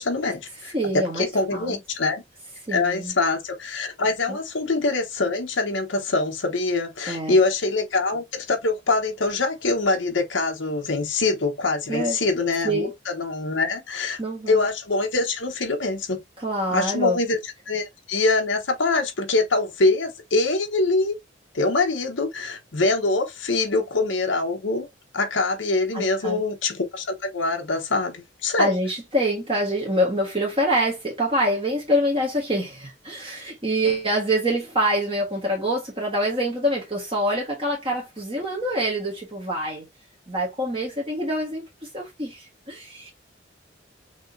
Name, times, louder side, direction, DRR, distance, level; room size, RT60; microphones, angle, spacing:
voice 1, 0.0-2.2 2.7-14.2 14.5-16.2 16.7-17.4 17.7-21.2 21.5-24.9 25.1-28.7, left 3 dB, 80° left, 1.0 m, -24 dB
voice 2, 0.7-1.8 2.7-3.1 4.3-4.4 7.1-7.4 11.9-12.2 12.6-12.9 14.2-14.6 16.4-17.2 25.9-26.4 28.6-39.8 40.3-43.1, equal, 30° right, 1.4 m, -25 dB
6.0 x 3.0 x 2.6 m
head